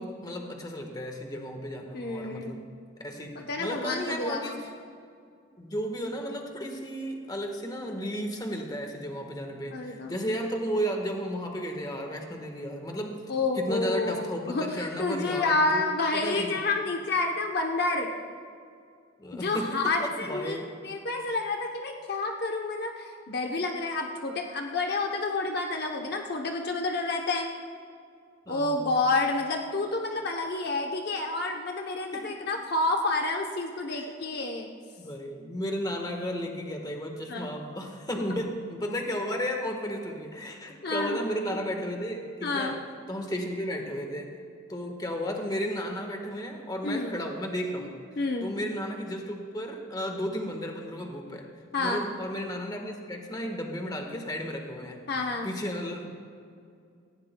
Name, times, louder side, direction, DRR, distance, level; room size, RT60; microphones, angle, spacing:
voice 1, 0.0-2.6 3.0-4.6 5.6-13.1 13.6-16.6 19.2-19.7 20.0-20.6 28.5-29.0 32.1-32.4 33.9-34.1 35.0-42.8 43.1-44.3 44.7-47.9 48.4-51.5 51.8-55.0 55.4-56.1, equal, 20° left, 3 dB, 1.4 m, -34 dB
voice 2, 1.9-2.6 3.4-4.6 9.7-10.1 13.3-18.1 19.3-20.6 20.8-27.5 28.5-34.7 37.3-37.5 40.8-41.2 42.4-42.8 46.8-47.1 47.8-47.9 48.2-48.5 51.7-52.0 55.1-55.5, left 3 dB, 55° left, 2 dB, 0.8 m, -29 dB
18.5 x 15.0 x 2.3 m, 2.3 s
head